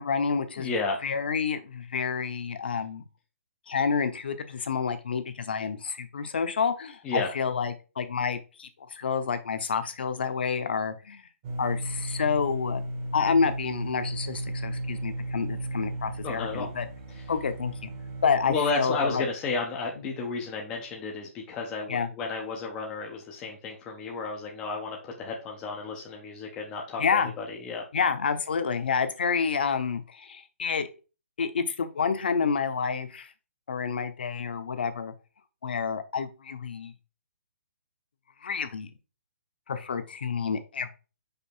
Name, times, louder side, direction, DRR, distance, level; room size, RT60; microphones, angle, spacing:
voice 1, 0.0-0.7 1.0-3.0 3.7-11.3 11.6-12.8 13.1-16.9 17.3-17.9 18.2-19.2 20.0-20.1 21.9-22.1 27.0-27.3 27.9-30.9 31.4-33.3 33.7-35.1 35.6-36.9 38.4-38.9 39.7-40.9, left 6 dB, 45° left, 9 dB, 0.9 m, -29 dB
voice 2, 0.6-1.0 7.0-7.3 16.2-16.7 17.1-17.2 18.5-27.8, left 4 dB, 10° left, 0 dB, 0.5 m, -32 dB
sound 1, 11.4-18.6, right 1 dB, 20° right, 0.8 m, -35 dB
5.3 x 4.7 x 4.5 m, 0.33 s
hypercardioid pair, 180°, 7 cm